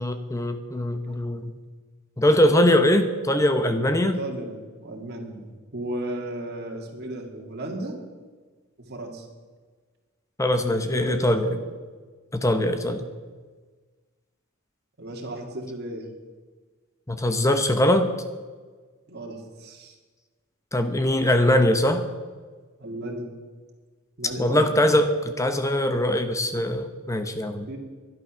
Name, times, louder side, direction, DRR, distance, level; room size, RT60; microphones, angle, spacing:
voice 1, 0.0-1.5 2.2-4.2 10.4-11.5 12.3-13.1 17.1-18.1 20.7-22.0 24.4-27.7, left 1 dB, 15° left, 8 dB, 0.8 m, -22 dB
voice 2, 4.2-7.9 8.9-9.3 10.9-11.7 15.0-16.1 19.1-20.0 22.8-23.3 24.2-24.7 27.7-27.8, right 1 dB, 50° right, 0 dB, 2.1 m, -35 dB
12.0 x 11.0 x 6.2 m, 1.4 s
head